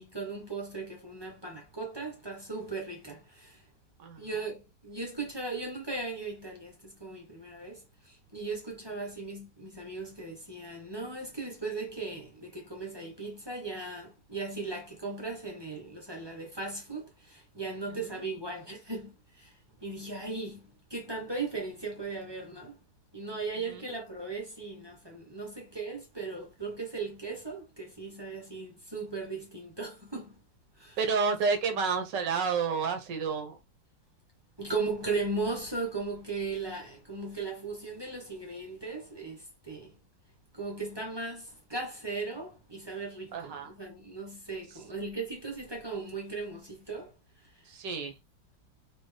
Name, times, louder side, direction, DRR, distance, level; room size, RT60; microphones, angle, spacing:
voice 1, 0.0-3.6 4.2-22.8 23.1-30.4 30.8-31.0 34.6-40.0 40.5-47.1 47.4-47.5, right 3 dB, 20° right, 0.9 m, -37 dB
voice 2, 31.0-33.6 43.3-43.8 47.7-48.1, right 5 dB, 70° right, 1.5 m, -30 dB
4.3 x 3.0 x 3.3 m
omnidirectional pair, 2.1 m